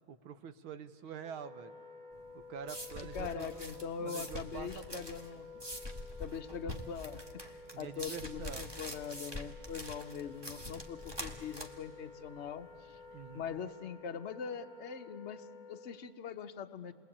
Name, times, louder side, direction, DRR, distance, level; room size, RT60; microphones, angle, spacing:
voice 1, 0.1-1.7 2.3-3.6 4.0-5.1 7.7-8.7 13.1-13.5, right 8 dB, 80° right, 12 dB, 1.8 m, -46 dB
Wind instrument woodwind instrument, 1.2-16.1, left 4 dB, 20° left, 2.2 m, -52 dB
sound 1, 2.1-13.5, equal, 15° right, 1.1 m, -45 dB
voice 2, 3.0-5.5 6.2-13.0 13.3-16.9, left 7 dB, 60° left, 8 dB, 0.7 m, -42 dB
28.0 x 21.0 x 8.6 m, 2.4 s
omnidirectional pair, 2.3 m